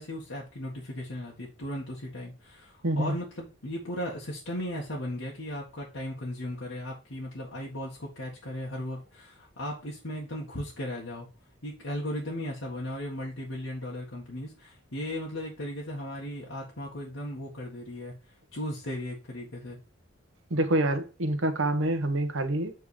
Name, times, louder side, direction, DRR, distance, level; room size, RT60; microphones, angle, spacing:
voice 1, 0.0-11.3 11.6-18.2 18.5-19.8, left 1 dB, 75° left, 1.8 m, -36 dB
voice 2, 2.8-3.1 20.5-22.7, right 1 dB, 70° right, 1.2 m, -26 dB
8.2 x 3.7 x 4.9 m
head